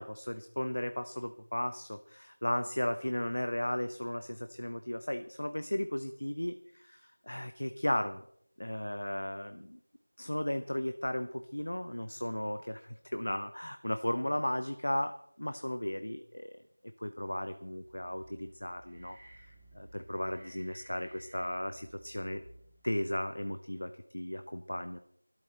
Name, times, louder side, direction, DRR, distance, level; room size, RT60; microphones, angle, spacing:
voice 1, 0.0-8.2 8.6-9.8 10.2-16.5 17.0-19.2 19.7-22.4 22.8-25.0, left 1 dB, 50° left, 9 dB, 0.9 m, -35 dB
sound 1, 17.7-23.0, right 1 dB, 5° right, 1.1 m, -57 dB
22.0 x 12.5 x 4.4 m, 0.70 s
figure-of-eight pair, 180°, 0 cm